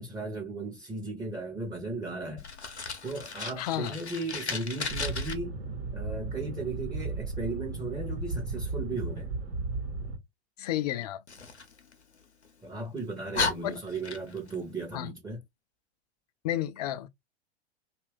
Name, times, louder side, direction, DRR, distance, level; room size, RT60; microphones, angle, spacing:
voice 1, 0.0-2.4 3.0-5.6 5.9-9.3 12.6-15.4, right 2 dB, 10° right, 0.8 m, -36 dB
Fire, 2.4-5.3 11.3-12.5 13.0-13.1 13.3-14.5, left 4 dB, 80° left, 0.8 m, -35 dB
voice 2, 3.6-3.9 10.6-11.2 13.6-13.7 14.9-15.1 16.4-17.1, left 13 dB, 40° left, 0.4 m, -31 dB
sound 1, 4.9-10.2, right 3 dB, 60° right, 1.0 m, -35 dB
2.9 x 2.4 x 3.0 m
figure-of-eight pair, 95°, 33 cm